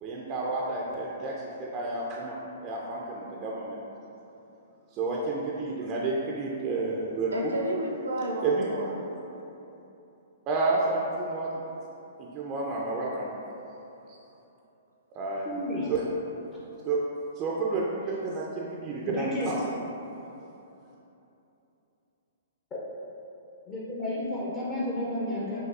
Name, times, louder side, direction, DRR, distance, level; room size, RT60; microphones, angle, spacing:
voice 1, 0.0-3.8 4.9-7.5 8.4-8.7 10.5-11.6 12.2-13.3 15.2-15.5 15.8-16.0 16.8-17.0 17.4-19.6, right 3 dB, 35° right, -3 dB, 0.4 m, -30 dB
voice 2, 7.3-9.0 25.4-25.7, right 1 dB, 85° right, -1 dB, 0.6 m, -32 dB
voice 3, 15.5-15.9 19.1-19.5 23.7-25.6, left 1 dB, 25° left, -8 dB, 0.7 m, -32 dB
5.7 x 2.6 x 2.4 m, 2.9 s
hypercardioid pair, 120°, 0 cm